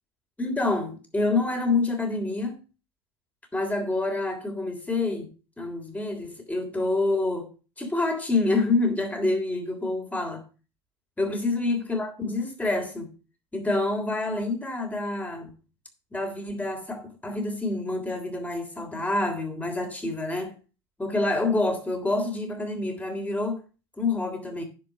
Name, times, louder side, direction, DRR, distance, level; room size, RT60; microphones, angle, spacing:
voice 1, 0.4-2.6 3.5-5.3 5.6-7.5 7.8-10.4 11.2-13.1 13.5-15.5 16.1-20.5 21.0-23.6 24.0-24.6, left 2 dB, 10° left, 3.3 m, -27 dB
10.5 x 5.4 x 6.5 m
supercardioid pair, 105°, 15 cm